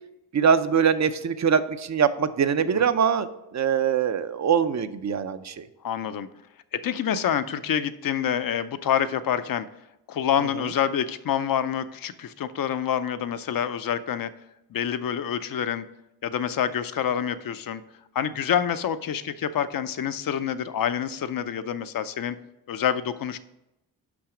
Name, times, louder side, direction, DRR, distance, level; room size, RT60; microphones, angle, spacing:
voice 1, 0.3-3.3 3.5-5.7, right 7 dB, 40° right, 12 dB, 0.5 m, -23 dB
voice 2, 5.8-6.3 6.7-9.7 10.1-14.3 14.7-15.8 16.2-17.8 18.1-22.4 22.7-23.4, left 9 dB, 55° left, 12 dB, 0.6 m, -27 dB
6.0 x 5.7 x 4.9 m, 0.90 s
cardioid pair, 65°, 43 cm